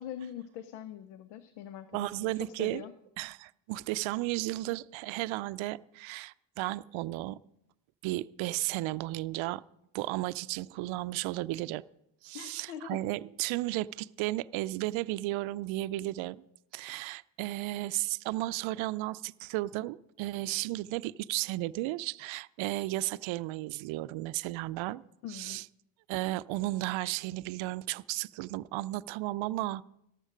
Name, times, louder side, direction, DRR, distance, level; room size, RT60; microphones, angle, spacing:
voice 1, 0.0-2.9 12.3-13.1 25.2-25.6, left 10 dB, 90° left, 13 dB, 0.7 m, -43 dB
voice 2, 1.9-2.8 3.2-7.4 8.0-9.6 9.9-11.8 12.2-16.4 16.7-25.0 25.3-25.7 26.1-29.8, right 18 dB, 75° right, 17 dB, 0.5 m, -34 dB
14.0 x 12.5 x 5.0 m, 0.79 s
hypercardioid pair, 45°, 48 cm